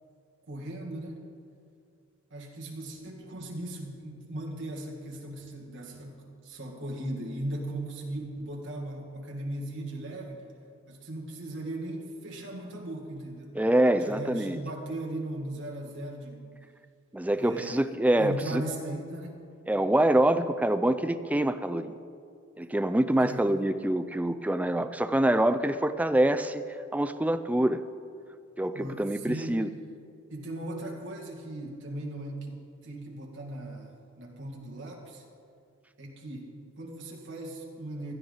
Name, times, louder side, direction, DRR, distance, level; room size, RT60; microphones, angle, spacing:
voice 1, 0.5-1.2 2.3-10.5 10.9-13.6 14.0-16.5 17.4-17.9 18.2-19.4 23.2-23.5 28.7-29.6 30.3-35.2 36.0-38.1, right 1 dB, 60° right, 0 dB, 2.1 m, -38 dB
voice 2, 13.6-14.6 17.1-18.6 19.7-22.0 22.6-26.6 26.9-27.8 28.6-29.7, right 1 dB, 5° right, 10 dB, 0.4 m, -25 dB
16.0 x 12.0 x 4.0 m, 2.3 s
head